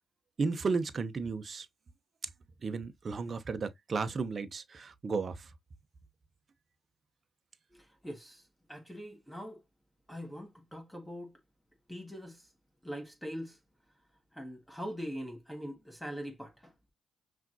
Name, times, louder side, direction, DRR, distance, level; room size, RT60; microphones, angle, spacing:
voice 1, 0.4-1.7 2.6-5.5, right 4 dB, 45° right, 0.7 m, -34 dB
voice 2, 7.7-8.4 8.7-9.6 10.1-11.3 11.9-12.5 12.8-13.6 14.3-16.7, equal, 5° left, 1.4 m, -42 dB
5.8 x 2.5 x 2.6 m
hypercardioid pair, 45°, 0 cm